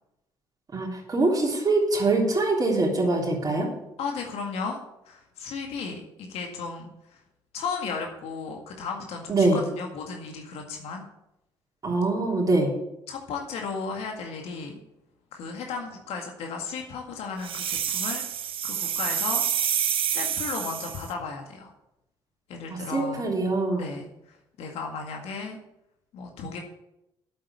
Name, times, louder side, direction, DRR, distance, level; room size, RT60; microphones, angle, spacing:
voice 1, 0.7-3.7 9.3-9.6 11.8-12.7 22.7-23.9, right 2 dB, 35° right, -2 dB, 3.5 m, -24 dB
voice 2, 4.0-7.2 7.5-11.0 13.1-14.8 15.3-19.4 20.1-21.7 22.5-23.3 23.8-25.6 26.1-26.6, left 5 dB, 70° left, 2 dB, 2.0 m, -35 dB
sound 1, 17.4-21.1, right 9 dB, 55° right, 1.0 m, -28 dB
8.5 x 7.8 x 8.2 m, 0.86 s
hypercardioid pair, 55°, 11 cm